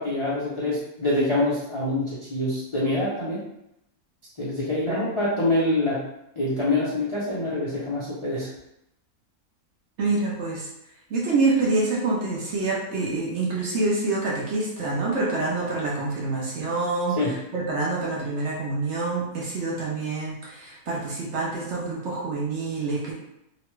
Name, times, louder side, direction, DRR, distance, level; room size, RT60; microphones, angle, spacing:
voice 1, 0.0-3.4 4.4-6.0 6.4-8.5 17.2-17.4, left 2 dB, 35° left, -9 dB, 0.5 m, -25 dB
voice 2, 10.0-10.7 11.1-23.1, right 3 dB, 60° right, -4 dB, 0.9 m, -26 dB
3.0 x 2.2 x 3.1 m, 0.83 s
omnidirectional pair, 1.5 m